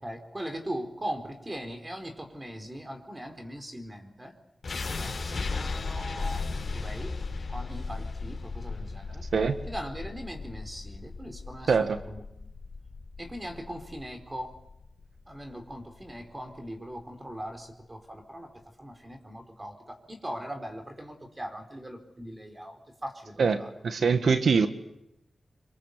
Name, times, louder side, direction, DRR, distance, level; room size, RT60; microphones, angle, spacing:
voice 1, 0.0-4.3 4.9-6.4 6.7-9.2 9.7-12.2 13.2-14.5 15.3-23.7, equal, 20° right, 5 dB, 4.3 m, -40 dB
sound 1, 4.6-16.7, left 4 dB, 60° left, 4.2 m, -36 dB
voice 2, 23.4-24.7, right 5 dB, 80° right, 10 dB, 1.5 m, -23 dB
25.5 x 24.0 x 8.3 m, 0.83 s
cardioid pair, 65°, 0 cm